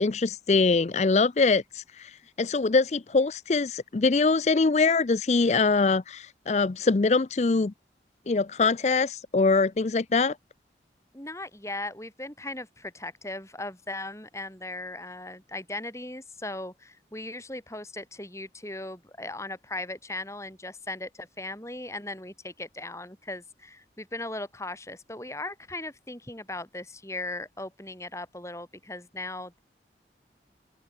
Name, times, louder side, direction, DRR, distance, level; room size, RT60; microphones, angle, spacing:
voice 1, 0.0-2.1 2.4-7.7 8.3-10.4, left 4 dB, 40° left, 0.4 m, -23 dB
voice 2, 11.1-29.6, left 2 dB, 15° left, 6.1 m, -38 dB
open air
head